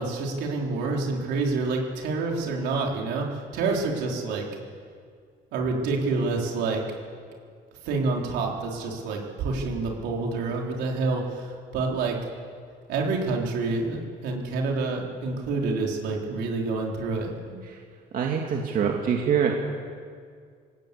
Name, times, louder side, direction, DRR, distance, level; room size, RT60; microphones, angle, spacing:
voice 1, 0.0-4.5 5.5-6.8 7.8-12.2 12.9-17.6, right 3 dB, 85° right, 0 dB, 4.2 m, -28 dB
voice 2, 18.1-19.5, right 7 dB, 55° right, 1 dB, 2.3 m, -24 dB
21.0 x 17.0 x 8.6 m, 2.1 s
cardioid pair, 110°, 17 cm